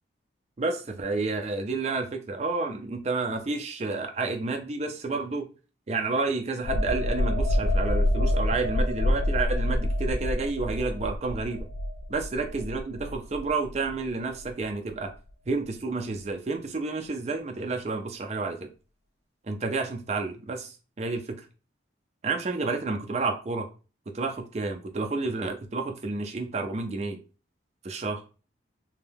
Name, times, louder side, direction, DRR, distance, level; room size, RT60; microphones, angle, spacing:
voice 1, 0.6-5.4 5.9-11.7 12.1-15.1 15.5-18.7 19.5-21.4 22.2-23.7 24.1-27.2 27.8-28.2, right 3 dB, 35° right, 0.4 m, -30 dB
sound 1, 6.6-14.1 14.4-14.6, left 1 dB, 65° left, 0.4 m, -27 dB
2.7 x 2.2 x 3.3 m
head